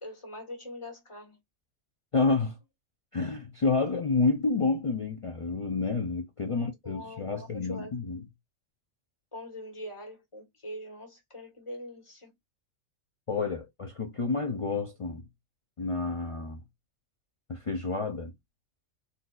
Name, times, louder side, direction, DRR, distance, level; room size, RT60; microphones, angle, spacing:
voice 1, 0.0-1.4 6.5-7.9 9.3-12.3, left 1 dB, 25° left, 1.3 m, -43 dB
voice 2, 2.1-2.6 3.1-8.2 13.3-15.3 15.8-16.6 17.5-18.3, left 4 dB, 55° left, 0.3 m, -29 dB
4.0 x 2.7 x 2.3 m
omnidirectional pair, 1.3 m